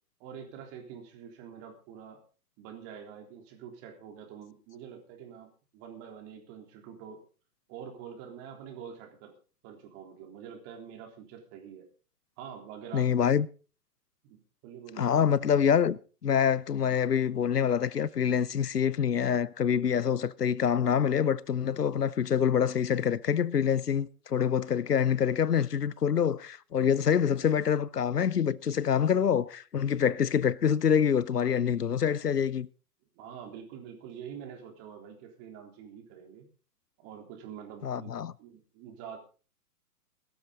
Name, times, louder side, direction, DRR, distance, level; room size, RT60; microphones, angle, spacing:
voice 1, 0.2-2.2 2.6-7.2 7.7-9.4 9.6-11.9 12.4-13.4 14.2-15.1 33.2-36.5 37.0-39.2, right 8 dB, 30° right, 3.7 m, -46 dB
voice 2, 12.9-13.5 15.0-32.7 37.8-38.3, left 8 dB, 85° left, 0.8 m, -26 dB
16.5 x 13.0 x 3.9 m
figure-of-eight pair, 120°, 46 cm